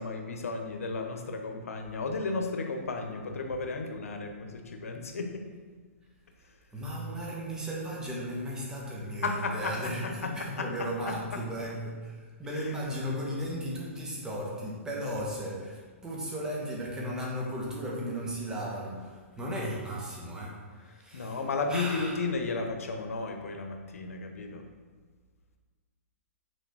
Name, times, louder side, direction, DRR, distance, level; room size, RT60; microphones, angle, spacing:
voice 1, 0.0-5.5 9.2-9.8 10.2-10.7 11.1-11.2 21.1-24.6, left 3 dB, 90° left, 4 dB, 1.0 m, -33 dB
voice 2, 6.7-22.2, equal, 10° right, -4 dB, 1.5 m, -36 dB
6.7 x 4.0 x 6.3 m, 1.5 s
hypercardioid pair, 150°, 8 cm